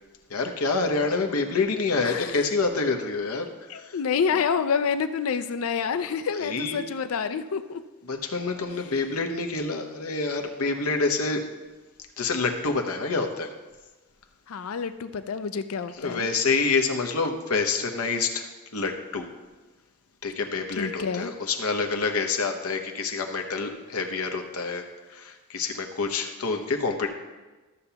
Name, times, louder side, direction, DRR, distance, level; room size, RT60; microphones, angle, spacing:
voice 1, 0.3-3.5 3.7-4.0 6.4-6.8 8.1-11.4 12.2-13.5 16.0-19.3 20.2-27.1, left 4 dB, 90° left, 4 dB, 0.9 m, -27 dB
voice 2, 2.0-2.3 3.7-7.8 14.5-16.3 20.8-21.3, left 6 dB, 75° left, 11 dB, 0.4 m, -28 dB
13.5 x 6.9 x 2.9 m, 1.2 s
head